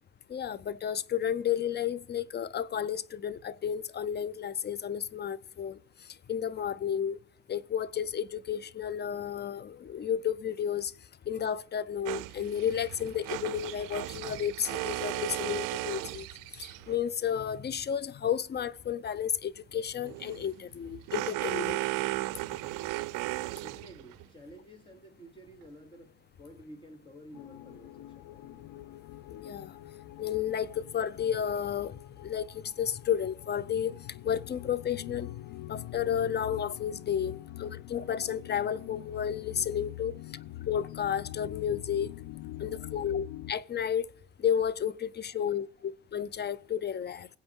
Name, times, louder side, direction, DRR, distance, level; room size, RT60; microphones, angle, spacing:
voice 1, 0.3-5.8 6.3-7.2 7.5-10.9 11.3-16.3 16.6-21.8 29.3-29.7 30.2-34.0 34.2-35.3 35.7-40.2 40.7-42.1 42.6-44.1 44.4-47.3, left 8 dB, 30° left, 0.5 m, -32 dB
sound 1, 12.1-17.0 20.0-24.3, right 19 dB, 75° right, 0.5 m, -36 dB
voice 2, 23.6-28.8 37.3-37.4 40.3-40.5 42.5-43.2 45.3-45.7, equal, 15° left, 2.7 m, -52 dB
sound 2, 27.3-43.5, left 15 dB, 80° left, 0.5 m, -44 dB
21.0 x 8.0 x 3.6 m
cardioid pair, 85°, 32 cm